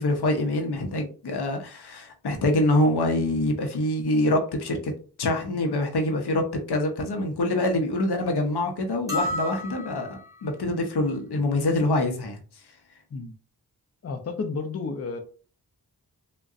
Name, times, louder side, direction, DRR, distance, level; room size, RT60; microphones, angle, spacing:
voice 1, 0.0-4.9 5.2-12.4, left 1 dB, 85° left, 3 dB, 0.7 m, -25 dB
sound 1, 9.1-10.4, left 1 dB, 10° right, 1.5 m, -31 dB
voice 2, 14.0-15.2, left 4 dB, 40° left, 5 dB, 0.5 m, -31 dB
3.7 x 2.2 x 2.4 m, 0.39 s
cardioid pair, 50°, 38 cm